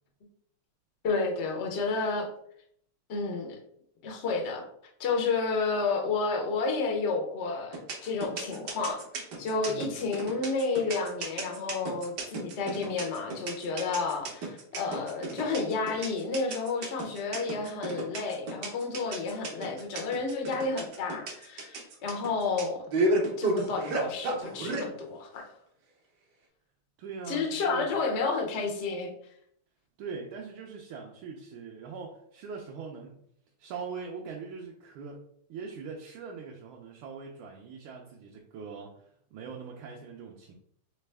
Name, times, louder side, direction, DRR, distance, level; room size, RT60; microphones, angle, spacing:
voice 1, 1.0-2.3 3.1-3.6 4.0-4.6 5.0-22.8 23.4-25.5 27.3-29.1, left 4 dB, 70° left, 1 dB, 0.6 m, -31 dB
sound 1, 7.7-24.9, right 2 dB, 60° right, 1.3 m, -32 dB
voice 2, 27.0-27.9 30.0-33.2 33.6-40.5, right 5 dB, 75° right, 0 dB, 1.4 m, -42 dB
4.1 x 3.2 x 3.3 m, 0.69 s
omnidirectional pair, 2.4 m